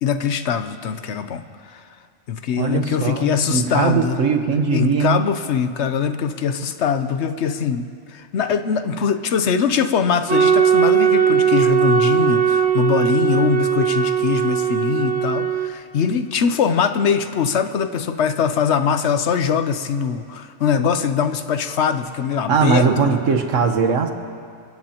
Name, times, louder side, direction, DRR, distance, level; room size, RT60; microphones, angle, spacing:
voice 1, 0.0-1.8 2.3-4.2 4.7-23.2, left 7 dB, 65° left, 9 dB, 1.0 m, -22 dB
voice 2, 2.6-5.2 22.5-24.1, right 5 dB, 85° right, 5 dB, 1.5 m, -19 dB
sound 1, 10.3-15.7, right 8 dB, 60° right, 1.2 m, -18 dB
27.0 x 15.5 x 2.9 m, 2.3 s
omnidirectional pair, 1.3 m